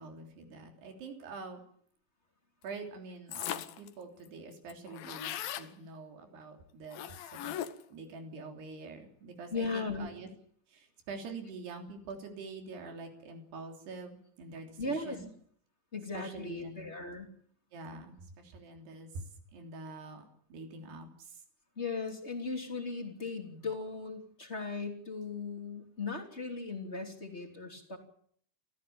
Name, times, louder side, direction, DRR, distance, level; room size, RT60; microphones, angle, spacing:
voice 1, 0.0-1.6 2.6-7.6 7.9-10.3 10.7-15.3 16.2-16.9 17.7-19.3 19.5-21.4, right 3 dB, 90° right, 3 dB, 5.5 m, -45 dB
sound 1, 3.3-3.9 4.3-4.4 4.5-5.7 6.9-7.9, left 12 dB, 70° left, 2.7 m, -39 dB
voice 2, 9.5-10.1 14.8-15.2 15.9-17.3 21.8-28.0, left 3 dB, 20° left, 3 dB, 2.9 m, -37 dB
28.5 x 14.5 x 8.7 m, 0.62 s
omnidirectional pair, 4.6 m